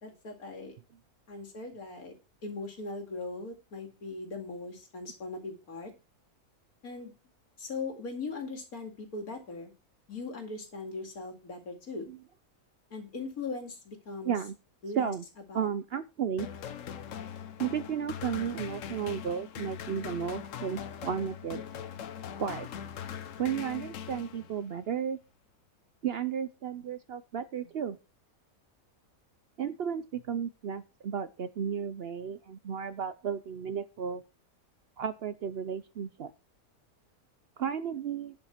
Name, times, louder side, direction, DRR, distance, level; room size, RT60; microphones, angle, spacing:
voice 1, 0.0-0.8 1.3-2.1 2.4-5.9 6.8-7.1 7.6-9.7 10.1-12.1 12.9-14.3 14.8-15.1 15.5-15.7, left 3 dB, 90° left, 3 dB, 2.7 m, -39 dB
voice 2, 14.2-14.6 14.9-15.2 15.5-16.5 17.6-21.6 22.4-22.7 23.4-25.2 26.0-28.0 29.6-34.2 35.0-36.3 37.6-38.3, right 8 dB, 60° right, 13 dB, 0.7 m, -33 dB
sound 1, 16.4-24.8, left 8 dB, 65° left, 1.1 m, -41 dB
11.0 x 5.3 x 5.7 m, 0.31 s
omnidirectional pair, 1.5 m